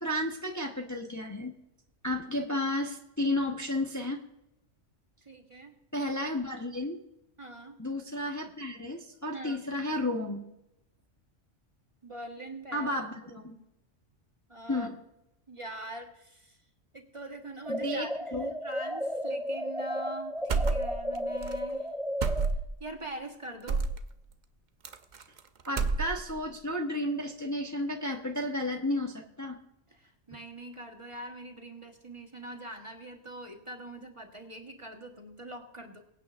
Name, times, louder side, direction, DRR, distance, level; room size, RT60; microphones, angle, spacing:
voice 1, 0.0-1.5 2.0-4.2 5.9-7.0 7.8-10.4 12.7-13.6 14.7-14.9 17.7-18.5 25.7-29.6, left 1 dB, 15° left, 2 dB, 1.0 m, -32 dB
voice 2, 5.2-5.7 7.4-7.8 9.3-9.6 12.0-13.7 14.5-14.9 15.5-16.6 16.9-21.9 22.4-23.8 29.9-36.0, right 1 dB, 25° right, 3 dB, 1.3 m, -43 dB
sound 1, 17.6-22.5, equal, ahead, 0.4 m, -34 dB
sound 2, 20.5-21.2 21.4-21.6 22.2-22.8 23.7-24.0 24.8-25.4 25.7-26.4, right 4 dB, 45° right, 0.7 m, -29 dB
23.5 x 9.0 x 2.5 m, 0.88 s
omnidirectional pair, 1.3 m